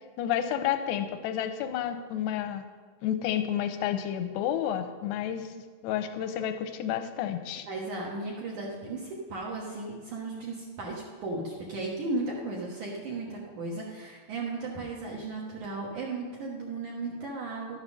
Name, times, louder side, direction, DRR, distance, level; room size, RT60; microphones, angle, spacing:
voice 1, 0.2-2.6 3.0-5.5 5.8-7.7, left 10 dB, 85° left, 8 dB, 2.6 m, -30 dB
voice 2, 7.7-17.8, right 2 dB, 65° right, -3 dB, 2.1 m, -35 dB
12.0 x 7.6 x 6.4 m, 1.5 s
omnidirectional pair, 5.3 m